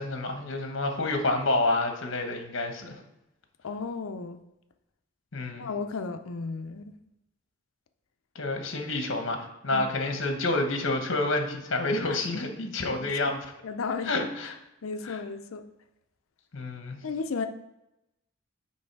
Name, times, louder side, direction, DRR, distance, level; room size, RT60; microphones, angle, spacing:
voice 1, 0.0-3.0 5.3-5.7 8.3-13.4 14.1-14.5 15.1-15.2 16.5-17.0, left 2 dB, 65° left, 1.1 m, -29 dB
voice 2, 3.6-4.4 5.6-6.9 9.7-9.9 12.1-12.3 12.9-13.2 13.6-14.1 14.8-15.6 17.0-17.5, left 4 dB, 80° left, 0.5 m, -34 dB
8.4 x 3.2 x 4.6 m
head